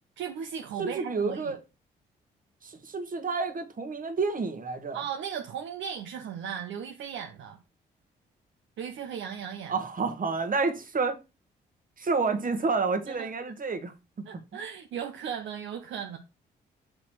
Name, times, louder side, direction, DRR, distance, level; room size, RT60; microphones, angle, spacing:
voice 1, 0.2-1.5 4.9-7.6 8.8-9.7 13.1-13.3 14.3-16.2, right 8 dB, 65° right, 0.8 m, -36 dB
voice 2, 0.8-1.6 2.6-5.0 9.7-11.1 12.0-14.2, right 4 dB, 40° right, 1.4 m, -29 dB
6.2 x 4.2 x 4.6 m
hypercardioid pair, 45°, 21 cm